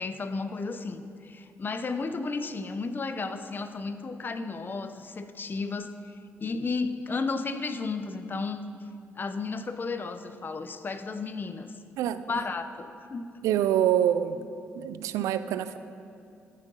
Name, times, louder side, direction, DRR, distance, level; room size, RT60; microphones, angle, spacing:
voice 1, 0.0-5.9 6.4-8.6 9.2-11.7 12.3-13.3, left 4 dB, 40° left, 10 dB, 0.8 m, -33 dB
voice 2, 12.0-12.4 13.4-14.5 14.7-15.8, right 10 dB, 90° right, 12 dB, 0.5 m, -26 dB
13.5 x 9.1 x 5.5 m, 2.6 s
cardioid pair, 75°, 5 cm